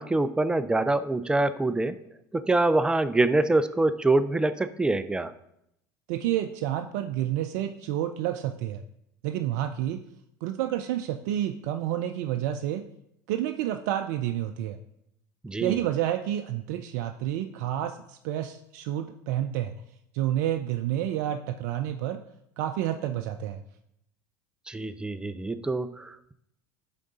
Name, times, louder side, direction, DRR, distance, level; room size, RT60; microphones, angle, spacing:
voice 1, 0.0-1.9 2.3-5.3 15.4-15.8 24.7-26.3, right 2 dB, 10° right, 12 dB, 0.5 m, -25 dB
voice 2, 6.1-8.8 9.2-10.0 10.4-12.9 13.3-14.8 15.6-19.7 20.1-22.2 22.6-23.6, right 12 dB, 70° right, 7 dB, 0.4 m, -29 dB
10.5 x 3.8 x 4.1 m, 0.79 s
hypercardioid pair, 85°, 10 cm